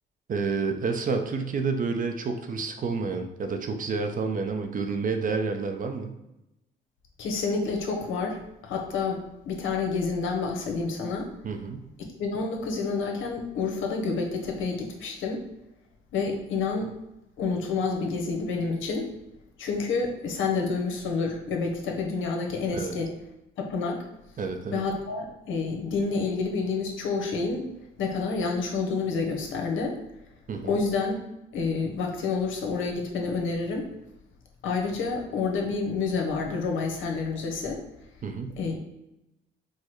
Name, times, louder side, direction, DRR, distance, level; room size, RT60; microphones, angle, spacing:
voice 1, 0.3-6.1 11.4-11.9 22.7-22.9 24.4-24.8 30.5-30.8 38.2-38.5, right 4 dB, 45° right, 5 dB, 0.6 m, -29 dB
voice 2, 7.2-11.3 12.0-15.4 16.1-16.9 17.4-19.1 19.6-23.1 23.6-24.0 24.7-27.6 28.0-30.0 30.6-31.1 31.5-33.9 34.6-37.8 38.6-38.8, left 4 dB, 80° left, 1 dB, 0.9 m, -29 dB
4.6 x 2.1 x 4.4 m, 0.90 s
cardioid pair, 90°, 20 cm